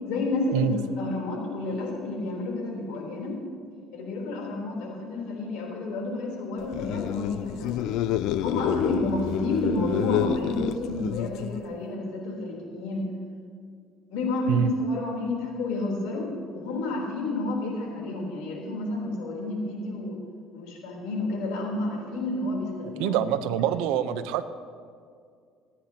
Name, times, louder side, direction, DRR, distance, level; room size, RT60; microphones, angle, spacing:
voice 1, 0.0-3.4 3.9-8.0 8.4-13.1 14.1-20.2 20.5-23.2, left 2 dB, 85° left, -1 dB, 3.6 m, -30 dB
sound 1, 6.6-11.7, left 12 dB, 70° left, 0.4 m, -29 dB
voice 2, 23.0-24.4, right 10 dB, 85° right, 11 dB, 0.7 m, -25 dB
25.0 x 10.0 x 2.9 m, 2.2 s
cardioid pair, 115°, 0 cm